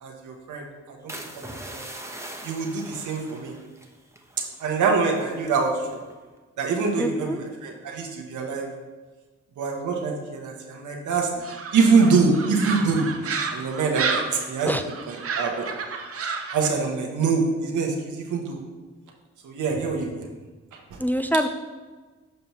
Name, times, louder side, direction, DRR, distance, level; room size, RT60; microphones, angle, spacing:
voice 1, 0.0-1.4 1.7-1.9 2.4-3.5 4.6-6.0 6.6-8.7 9.6-11.3 11.7-13.1 13.5-14.8 15.1-15.7 16.5-18.6 19.4-20.3 20.7-20.8, right 4 dB, 90° right, 1 dB, 0.9 m, -24 dB
sound 1, 1.1-5.5 5.9-6.2, right 1 dB, 10° right, 0.9 m, -41 dB
voice 2, 7.0-7.4 14.7-14.8 21.0-21.5, equal, 5° left, 7 dB, 0.4 m, -24 dB
sound 2, 11.4-16.7, right 5 dB, 50° right, 0.7 m, -31 dB
6.7 x 5.4 x 3.0 m, 1.3 s
cardioid pair, 50°, 29 cm